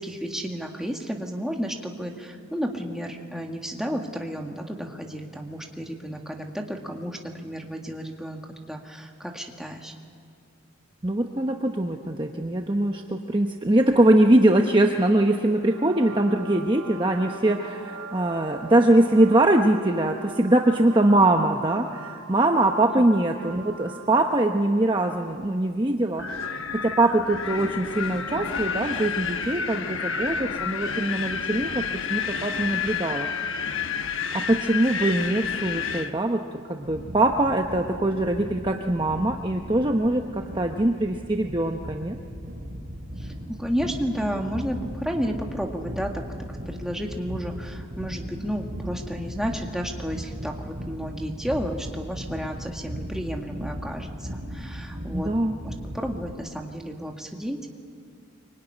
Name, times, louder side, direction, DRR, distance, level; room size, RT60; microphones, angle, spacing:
voice 1, 0.0-9.9 23.0-23.1 43.2-46.2 46.5-55.3 55.6-57.6, equal, ahead, 1 dB, 1.9 m, -32 dB
voice 2, 11.0-26.2 26.7-31.8 32.1-33.3 34.3-36.4 36.7-42.2 55.1-55.6, right 1 dB, 20° right, 3 dB, 0.9 m, -22 dB
sound 1, 15.6-24.4, right 4 dB, 65° right, 3.7 m, -42 dB
Wind, 26.2-36.1, left 6 dB, 65° left, 1.2 m, -30 dB
sound 2, 36.8-56.3, equal, 40° right, 3.5 m, -37 dB
25.0 x 23.5 x 10.0 m, 2.2 s
head